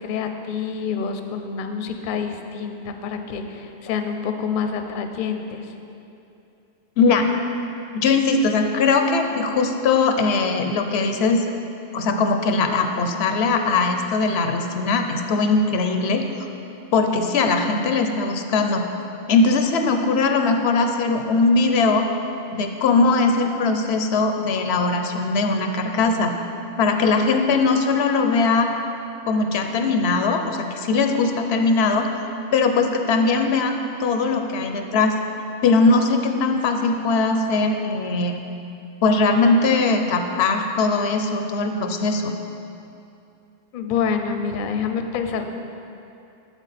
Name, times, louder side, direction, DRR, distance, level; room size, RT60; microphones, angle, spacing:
voice 1, 0.0-5.7 43.7-45.5, left 6 dB, 60° left, 6 dB, 0.7 m, -27 dB
voice 2, 7.0-7.3 7.9-11.5 11.9-16.3 16.9-18.9 19.3-22.0 22.5-26.3 26.8-28.7 29.3-32.1 32.5-35.2 35.6-38.4 39.0-42.3, left 3 dB, 90° left, 5 dB, 0.9 m, -20 dB
8.1 x 7.0 x 4.1 m, 2.7 s
omnidirectional pair, 1.1 m